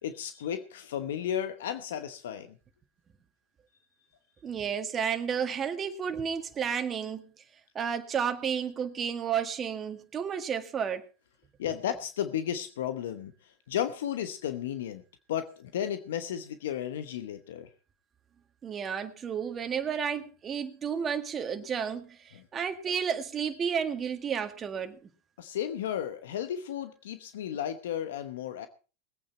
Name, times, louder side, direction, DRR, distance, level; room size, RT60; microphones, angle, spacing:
voice 1, 0.0-2.6 11.6-15.0 15.3-17.7 22.3-22.4 25.4-28.7, left 10 dB, 75° left, 1.0 m, -34 dB
voice 2, 4.4-7.3 7.8-11.0 18.6-25.0, right 7 dB, 30° right, 1.8 m, -32 dB
20.5 x 8.8 x 4.3 m
hypercardioid pair, 100°, 0 cm